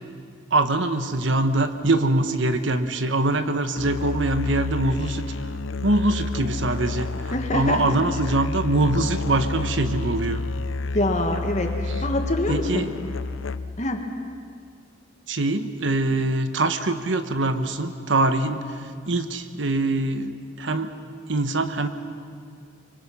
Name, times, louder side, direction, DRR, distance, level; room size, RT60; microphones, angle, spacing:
voice 1, 0.5-5.2 5.8-10.4 11.9-12.0 12.5-12.9 15.3-20.9 21.3-21.9, right 2 dB, 70° right, 9 dB, 1.2 m, -23 dB
Musical instrument, 3.8-13.9, left 3 dB, 85° left, 0.6 m, -30 dB
voice 2, 7.3-7.8 10.9-12.9 13.8-14.1, left 1 dB, 40° left, 3 dB, 1.9 m, -25 dB
25.0 x 24.5 x 5.6 m, 2.2 s
head